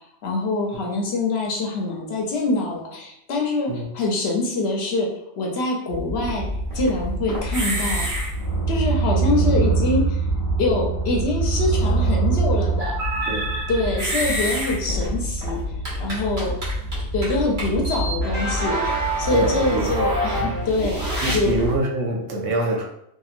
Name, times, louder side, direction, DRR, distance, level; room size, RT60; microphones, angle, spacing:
voice 1, 0.2-5.1 5.4-6.5 6.7-8.1 8.7-10.2 10.6-13.0 13.3-13.4 13.7-15.6 16.0-16.5 17.1-18.8 19.2-21.6, left 2 dB, 65° left, 0 dB, 0.9 m, -24 dB
sound 1, 5.9-21.8, right 2 dB, 50° right, 1.2 m, -24 dB
voice 2, 19.3-19.9 20.4-20.6 21.2-22.8, right 2 dB, 75° right, 0 dB, 0.9 m, -25 dB
2.8 x 2.6 x 2.4 m, 0.76 s
omnidirectional pair, 1.2 m